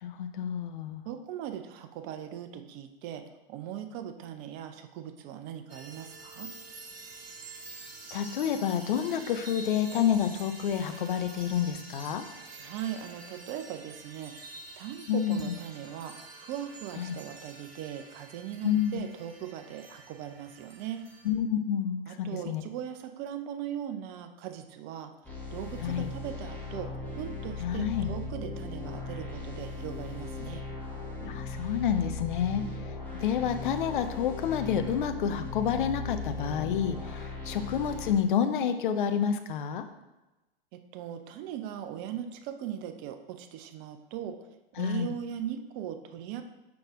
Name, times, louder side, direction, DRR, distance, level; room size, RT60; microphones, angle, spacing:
voice 1, 0.0-1.0 8.1-12.2 15.1-15.4 17.0-17.1 18.6-19.0 21.2-22.6 25.8-26.1 27.6-28.1 31.2-32.6 33.2-39.8 44.8-45.1, left 8 dB, 55° left, 8 dB, 0.7 m, -29 dB
voice 2, 1.1-3.2 3.5-6.5 12.6-14.3 14.8-16.1 16.5-21.0 22.1-25.1 25.5-26.9 27.2-30.6 40.7-44.4 44.8-46.4, right 10 dB, 30° right, 7 dB, 0.5 m, -39 dB
sound 1, 5.7-21.3, right 3 dB, 75° right, 0.9 m, -48 dB
sound 2, 25.2-38.1, left 3 dB, 5° left, 1.7 m, -38 dB
6.1 x 4.8 x 3.6 m, 1.0 s
figure-of-eight pair, 100°, 30 cm